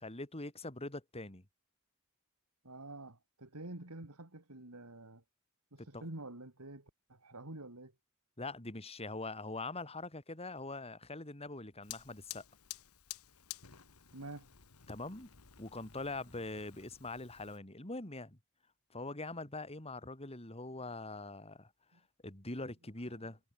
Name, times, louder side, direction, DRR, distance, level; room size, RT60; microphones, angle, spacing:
voice 1, 0.0-1.4 5.8-6.0 8.4-12.4 14.9-15.3 15.6-18.4 18.9-21.7 22.2-23.4, left 2 dB, 30° left, 3.1 m, -43 dB
voice 2, 2.6-5.2 5.7-7.9 14.1-14.5 21.9-22.0, right 2 dB, 90° right, 3.1 m, -48 dB
Fire, 11.8-17.6, left 12 dB, 80° left, 1.9 m, -52 dB
head